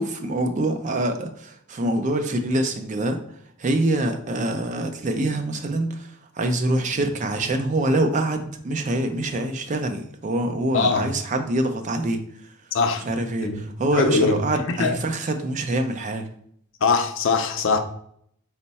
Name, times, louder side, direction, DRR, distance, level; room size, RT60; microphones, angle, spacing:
voice 1, 0.0-3.2 3.6-12.2 13.1-16.2, right 1 dB, 35° right, 0.4 m, -25 dB
voice 2, 10.7-11.1 12.7-13.0 13.4-13.6 13.9-14.4 14.7-15.0 16.8-17.8, left 4 dB, 60° left, 0.5 m, -21 dB
4.5 x 2.1 x 4.0 m
head